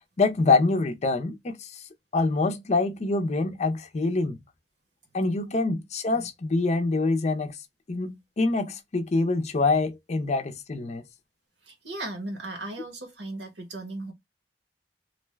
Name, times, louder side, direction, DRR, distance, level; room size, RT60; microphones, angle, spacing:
voice 1, 0.2-1.8 2.1-4.4 5.1-7.6 7.9-11.0, left 3 dB, 40° left, 0.5 m, -25 dB
voice 2, 11.6-14.1, right 2 dB, 75° right, 1.1 m, -37 dB
2.5 x 2.2 x 3.2 m
head